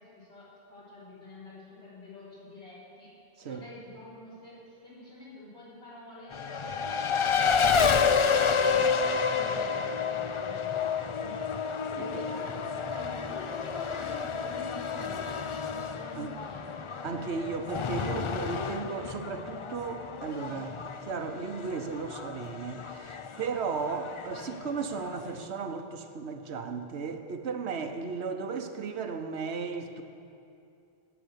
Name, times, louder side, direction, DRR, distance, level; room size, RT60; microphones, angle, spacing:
voice 1, 0.0-3.1 3.4-7.6 8.0-11.3 11.9-12.6 12.9-15.5 15.9-16.8 27.7-28.0, left 2 dB, 70° left, -9 dB, 4.3 m, -47 dB
Race car auto racing, 6.3-25.4, left 6 dB, 50° left, 0.4 m, -30 dB
voice 2, 17.0-30.0, right 5 dB, 80° right, 7 dB, 1.2 m, -35 dB
18.5 x 7.1 x 8.1 m, 2.7 s
omnidirectional pair, 1.1 m